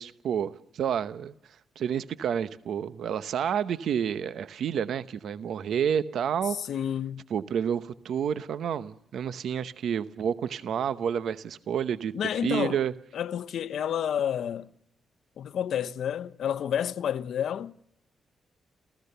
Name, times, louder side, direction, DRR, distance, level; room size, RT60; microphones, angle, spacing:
voice 1, 0.0-1.3 1.8-6.6 7.3-12.1 12.4-12.9, right 8 dB, 65° right, 0.8 m, -29 dB
voice 2, 6.7-7.2 12.1-12.8 13.1-14.7 15.4-17.8, left 9 dB, 65° left, 0.8 m, -30 dB
29.0 x 15.5 x 6.8 m
wide cardioid pair, 165°, 0 cm